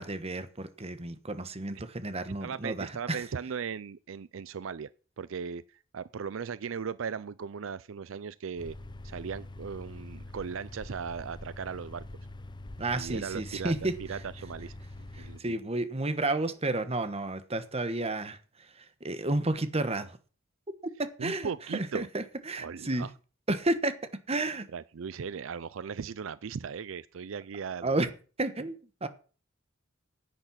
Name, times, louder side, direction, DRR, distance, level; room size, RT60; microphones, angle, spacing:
voice 1, 0.0-3.2 12.8-13.9 15.1-18.4 19.0-20.1 21.0-23.1 23.5-24.0 24.3-24.7 27.8-28.1 28.4-29.1, right 2 dB, 30° right, 1.3 m, -31 dB
voice 2, 2.3-4.9 5.2-5.6 5.9-8.8 9.0-12.1 12.9-14.7 15.2-15.6 21.2-22.1 22.6-23.1 24.7-28.0, right 6 dB, 80° right, 0.5 m, -38 dB
sound 1, 8.6-15.4, left 1 dB, 25° left, 0.8 m, -44 dB
10.5 x 9.0 x 5.8 m
head